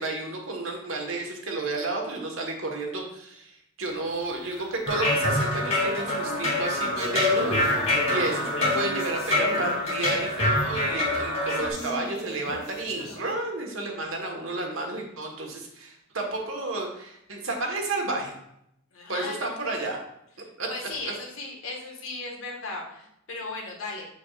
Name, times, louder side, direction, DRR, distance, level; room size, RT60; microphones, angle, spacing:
voice 1, 0.0-18.3 19.1-20.0 20.6-20.7, right 2 dB, 80° right, 1 dB, 1.4 m, -31 dB
sound 1, 3.8-13.2, left 1 dB, 50° left, 1.2 m, -38 dB
sound 2, 4.9-11.7, left 1 dB, 30° left, 2.7 m, -26 dB
voice 2, 18.9-19.4 20.7-24.1, left 3 dB, 80° left, -1 dB, 1.6 m, -36 dB
7.0 x 6.8 x 2.5 m, 0.77 s
head